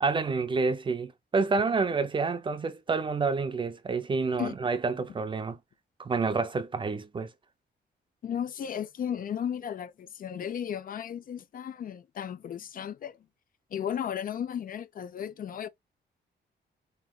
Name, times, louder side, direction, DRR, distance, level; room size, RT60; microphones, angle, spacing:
voice 1, 0.0-5.6 6.0-7.3, right 4 dB, 25° right, 0.6 m, -28 dB
voice 2, 8.2-13.2 13.7-15.7, left 9 dB, 50° left, 0.6 m, -34 dB
7.4 x 2.8 x 2.3 m
cardioid pair, 160°, 19 cm